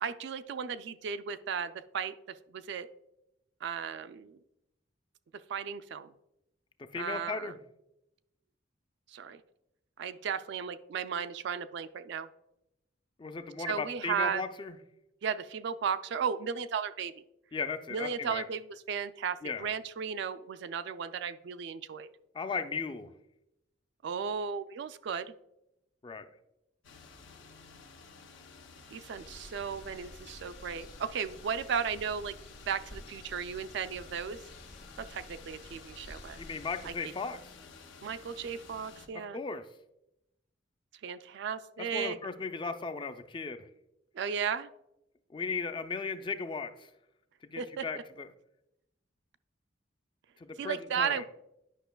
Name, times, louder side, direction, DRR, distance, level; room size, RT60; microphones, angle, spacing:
voice 1, 0.0-2.9 3.6-4.4 5.5-6.1 6.9-7.5 9.1-9.4 10.0-12.3 13.6-14.4 15.2-17.1 17.9-22.1 24.0-25.3 28.9-32.4 32.7-34.4 35.0-36.4 36.8-37.1 38.0-39.4 41.0-42.2 44.1-44.7 47.6-48.0 50.6-51.2, right 7 dB, 65° right, 12 dB, 0.3 m, -35 dB
voice 2, 6.9-7.6 13.2-14.8 17.5-18.4 19.4-19.7 22.3-23.1 26.0-26.2 36.4-37.4 39.3-39.6 41.9-43.7 45.3-46.9 47.5-48.3 50.4-51.2, left 4 dB, 25° left, 9 dB, 0.4 m, -36 dB
sound 1, 26.8-39.1, left 4 dB, 90° left, 0.7 m, -53 dB
sound 2, 29.1-36.9, left 1 dB, 55° left, 1.6 m, -52 dB
10.0 x 5.4 x 2.2 m, 0.86 s
head